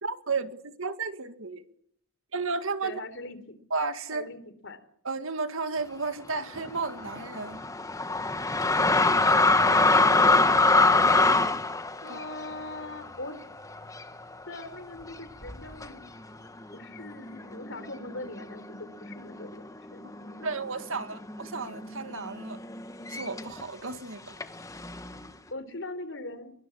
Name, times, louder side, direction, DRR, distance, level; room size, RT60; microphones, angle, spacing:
voice 1, 0.0-1.6 2.3-3.0 3.7-4.3 5.0-7.6 12.1-12.2 20.4-22.6 23.1-24.3, right 4 dB, 65° right, 2.0 m, -33 dB
voice 2, 2.8-3.6 4.1-4.8 9.7-11.2 12.0-13.4 14.5-16.0 16.7-19.7 19.9-20.8 25.5-26.5, left 2 dB, 55° left, 3.7 m, -41 dB
sound 1, 6.6-14.2 14.5-14.7 15.4-15.9 16.6-16.7 17.0-18.7 19.0-19.6 19.8-23.6 24.4-25.3, left 3 dB, 15° left, 1.5 m, -24 dB
24.5 x 23.0 x 8.5 m
head